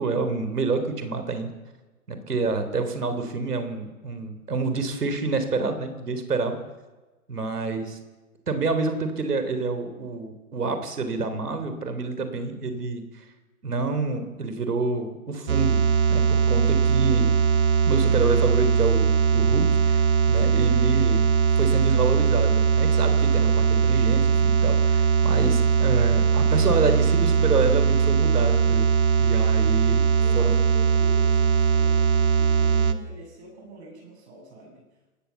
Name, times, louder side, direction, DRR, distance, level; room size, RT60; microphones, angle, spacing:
voice 1, 0.0-1.5 2.1-6.6 7.3-8.0 8.5-13.2 13.6-15.8 16.1-17.3 17.9-21.3 21.6-28.9 29.2-30.0 30.3-30.6, right 3 dB, 85° right, 9 dB, 3.7 m, -27 dB
voice 2, 7.6-8.0 30.1-34.8, right 2 dB, 45° right, 0 dB, 7.3 m, -44 dB
sound 1, 15.5-32.9, right 6 dB, 70° right, 1.9 m, -20 dB
22.5 x 18.0 x 7.2 m, 1.2 s
hypercardioid pair, 150°, 45 cm